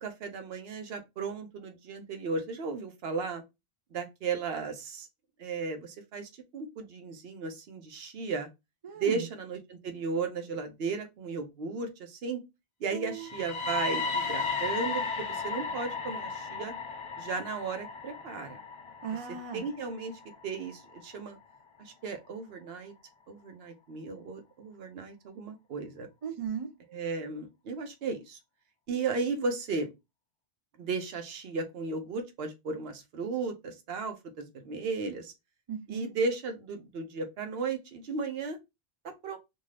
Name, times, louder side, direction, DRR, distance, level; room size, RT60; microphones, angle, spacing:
voice 1, 0.0-3.4 3.9-5.1 5.4-8.5 9.0-12.4 12.8-16.7 17.2-18.6 19.5-20.1 20.4-21.4 21.8-22.9 23.3-26.1 26.9-28.4 28.9-29.9 30.8-35.3 35.9-38.6 39.0-39.4, right 4 dB, 75° right, 0.9 m, -35 dB
voice 2, 8.8-9.3 12.9-13.3 19.0-19.6 26.2-26.7 35.7-36.1, right 7 dB, 45° right, 0.5 m, -36 dB
sound 1, 13.1-21.0, left 4 dB, 45° left, 0.4 m, -35 dB
2.6 x 2.3 x 3.1 m
omnidirectional pair, 1.0 m